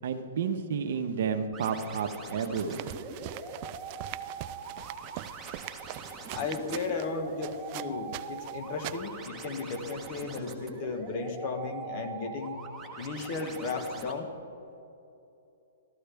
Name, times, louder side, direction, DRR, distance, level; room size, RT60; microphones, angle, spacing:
voice 1, 0.0-2.8, right 6 dB, 60° right, 7 dB, 0.9 m, -31 dB
sound 1, 1.5-14.1, right 4 dB, 10° right, 1.2 m, -42 dB
sound 2, 2.6-9.3, right 15 dB, 40° right, 0.3 m, -42 dB
voice 2, 6.3-12.6 13.0-14.3, left 4 dB, 45° left, 5 dB, 1.4 m, -35 dB
14.0 x 13.0 x 3.5 m, 2.7 s
hypercardioid pair, 140°, 0 cm